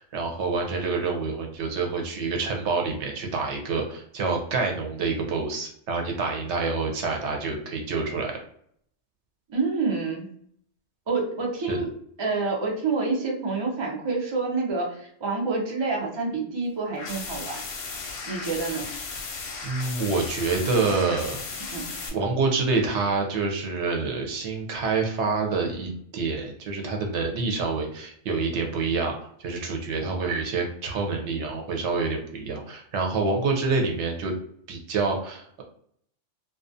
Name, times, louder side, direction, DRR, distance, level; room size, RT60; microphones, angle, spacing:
voice 1, 0.0-8.3 11.7-11.8 18.7-18.8 19.6-21.4 22.1-29.1 29.4-34.4 34.7-35.6, right 4 dB, 65° right, 2 dB, 0.9 m, -27 dB
voice 2, 9.5-10.3 11.1-11.9 12.2-17.6 18.3-18.8 21.7-21.8, right 3 dB, 50° right, -1 dB, 0.3 m, -27 dB
frightening demon noise, 17.0-22.1, left 4 dB, 60° left, 0.7 m, -35 dB
2.4 x 2.2 x 2.5 m, 0.66 s
omnidirectional pair, 1.3 m